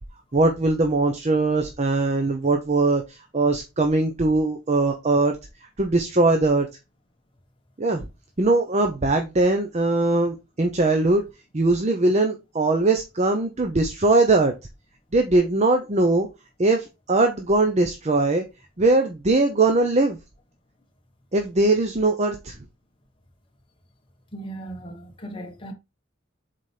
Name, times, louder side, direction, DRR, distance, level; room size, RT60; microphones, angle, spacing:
voice 1, 0.3-5.4 5.8-6.7 7.8-8.0 8.4-11.2 11.5-14.5 15.1-16.3 16.6-18.4 18.8-20.2 21.3-22.5, right 2 dB, 35° right, 0.7 m, -21 dB
voice 2, 24.3-25.7, right 1 dB, 25° left, 1.2 m, -37 dB
7.3 x 4.1 x 3.3 m
head